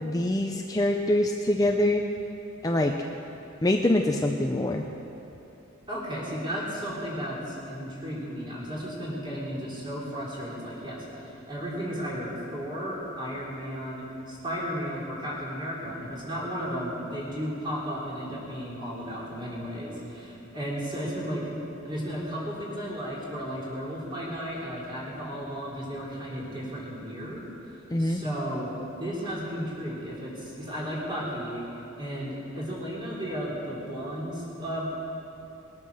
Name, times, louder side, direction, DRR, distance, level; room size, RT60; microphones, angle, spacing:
voice 1, 0.0-2.0 2.6-3.0 3.6-4.8 27.9-28.2, left 1 dB, 20° left, 3 dB, 0.5 m, -24 dB
voice 2, 5.9-21.5 21.8-27.5 28.0-28.7 29.0-34.9, equal, 25° right, -6 dB, 3.7 m, -34 dB
20.5 x 9.1 x 6.5 m, 2.9 s
head